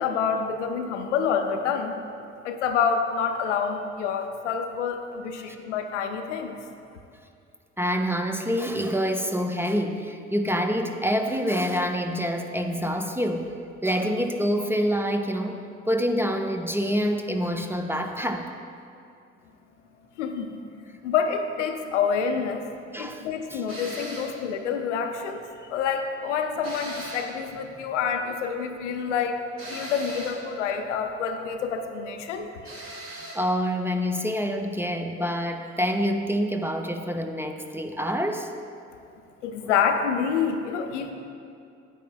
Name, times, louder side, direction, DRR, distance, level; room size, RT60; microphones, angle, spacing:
voice 1, 0.0-2.0 2.4-6.6 20.2-20.6 21.0-22.6 23.0-29.4 29.7-32.5 39.4-41.1, left 6 dB, 80° left, 5 dB, 0.5 m, -27 dB
voice 2, 7.8-13.5 13.8-18.5 22.9-23.6 33.4-38.5 39.6-39.8, equal, 5° right, 5 dB, 0.4 m, -27 dB
sound 1, 23.7-24.4 26.6-27.4 29.6-30.4 32.6-33.4, right 1 dB, 35° right, 1.8 m, -38 dB
9.0 x 9.0 x 2.2 m, 2.5 s
figure-of-eight pair, 45°, 35 cm